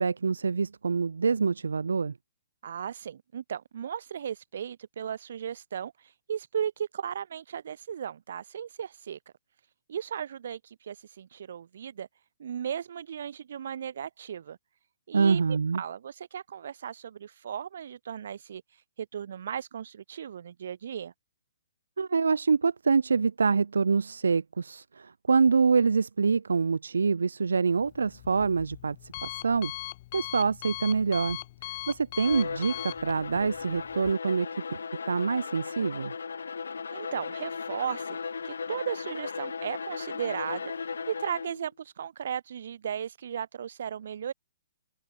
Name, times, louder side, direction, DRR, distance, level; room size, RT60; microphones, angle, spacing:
voice 1, 0.0-2.1 15.1-15.8 22.0-29.7 30.1-34.8 35.0-36.1, right 5 dB, 80° right, 1.7 m, -26 dB
voice 2, 2.6-9.2 9.9-12.1 12.4-14.6 15.1-18.6 19.0-21.1 36.9-40.7 41.1-44.3, right 8 dB, 60° right, 4.9 m, -36 dB
Alarm, 27.7-34.1, left 17 dB, 40° left, 2.5 m, -41 dB
Bowed string instrument, 32.1-41.6, left 5 dB, 75° left, 4.8 m, -37 dB
open air
hypercardioid pair, 130°, 0 cm